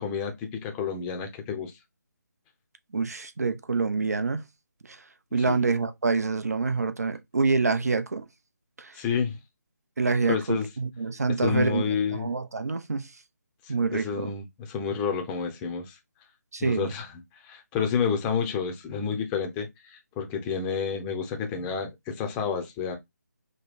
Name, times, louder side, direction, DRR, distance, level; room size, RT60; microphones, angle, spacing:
voice 1, 0.0-1.7 5.5-5.6 8.9-9.4 10.3-10.7 11.4-12.3 13.6-16.0 16.6-17.1 17.4-23.0, left 6 dB, 10° left, 0.7 m, -29 dB
voice 2, 2.9-4.4 4.9-5.0 5.3-8.3 8.8-9.0 10.0-11.8 12.1-13.1 13.7-14.3 16.5-16.9, right 4 dB, 60° right, 0.8 m, -26 dB
5.2 x 2.2 x 4.0 m
figure-of-eight pair, 150°, 10 cm